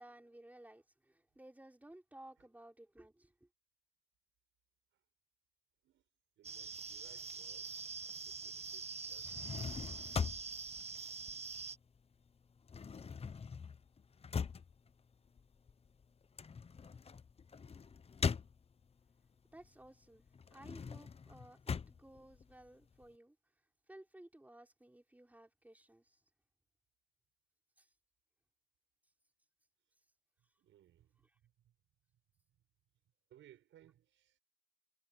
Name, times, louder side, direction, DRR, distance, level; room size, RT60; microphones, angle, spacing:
voice 1, 0.0-3.5 19.5-20.2 20.5-23.4 23.9-26.2 27.8-27.9, right 1 dB, 10° right, 4.5 m, -57 dB
sound 1, 6.4-11.8, right 5 dB, 30° right, 1.7 m, -45 dB
voice 2, 6.4-10.6 30.6-31.8 32.5-32.6 33.3-34.4, right 12 dB, 75° right, 7.1 m, -66 dB
sound 2, 9.1-12.0 12.3-19.1 19.5-23.1, left 6 dB, 30° left, 0.9 m, -42 dB
cardioid pair, 90°, 20 cm